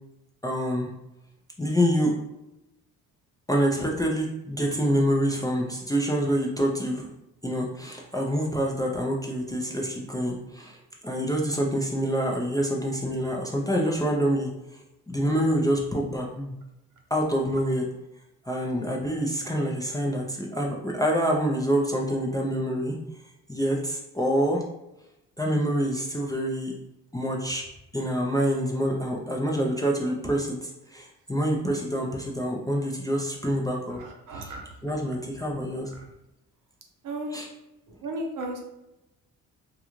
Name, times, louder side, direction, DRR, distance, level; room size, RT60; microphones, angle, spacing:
voice 1, 0.4-0.9 1.6-2.1 3.5-7.1 7.4-10.8 11.0-16.6 17.1-17.9 18.5-23.0 23.5-24.6 25.4-26.7 27.1-27.6 27.9-34.0 34.3-34.6 34.8-35.9 37.3-37.5, equal, 10° left, -1 dB, 0.5 m, -26 dB
voice 2, 34.0-34.6 37.0-37.4 38.0-38.6, right 1 dB, 55° right, 1 dB, 0.7 m, -34 dB
2.4 x 2.3 x 3.0 m, 0.92 s
supercardioid pair, 60°, 38 cm